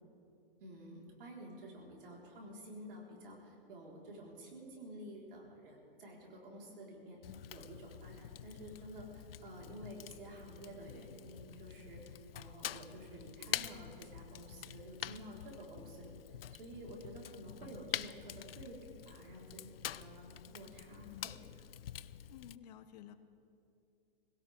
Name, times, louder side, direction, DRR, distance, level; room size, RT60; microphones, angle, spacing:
voice 1, 0.6-7.2 7.5-16.1 16.5-21.5 22.0-22.1, right 1 dB, 65° right, -2 dB, 4.9 m, -51 dB
Fire, 7.2-22.6, left 11 dB, 75° left, 0.5 m, -46 dB
voice 2, 21.0-21.3 22.3-23.2, left 11 dB, 45° left, 11 dB, 0.9 m, -52 dB
21.5 x 17.0 x 3.8 m, 2.6 s
hypercardioid pair, 130°, 29 cm